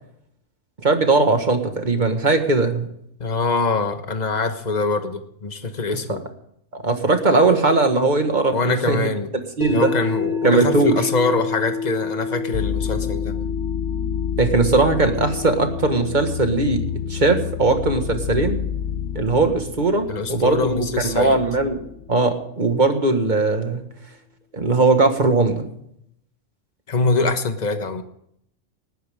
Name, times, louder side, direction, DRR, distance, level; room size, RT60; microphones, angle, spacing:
voice 1, 0.8-2.9 6.1-6.2 6.7-9.1 9.6-9.9 10.4-11.0 14.4-18.6 19.1-21.8 22.1-23.9 24.5-25.7, right 3 dB, 35° right, 6 dB, 1.8 m, -19 dB
voice 2, 3.2-6.2 8.5-9.3 9.7-13.4 20.1-21.4 26.9-28.0, left 3 dB, 35° left, 8 dB, 1.3 m, -24 dB
sound 1, 9.6-21.7, left 5 dB, 50° left, 4.8 m, -31 dB
sound 2, 12.5-22.1, left 9 dB, 65° left, 1.0 m, -29 dB
19.0 x 13.0 x 3.7 m, 0.73 s
omnidirectional pair, 1.3 m